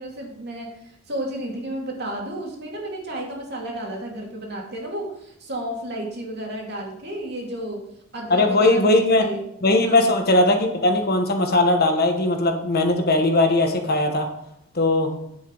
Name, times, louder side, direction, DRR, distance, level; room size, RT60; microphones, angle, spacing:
voice 1, 0.0-7.9 8.1-9.4 9.8-10.1, right 1 dB, 55° right, 0 dB, 2.5 m, -32 dB
voice 2, 8.3-9.3 9.6-14.3 14.7-15.1, left 2 dB, 50° left, 4 dB, 1.4 m, -19 dB
9.4 x 7.6 x 4.0 m, 0.76 s
head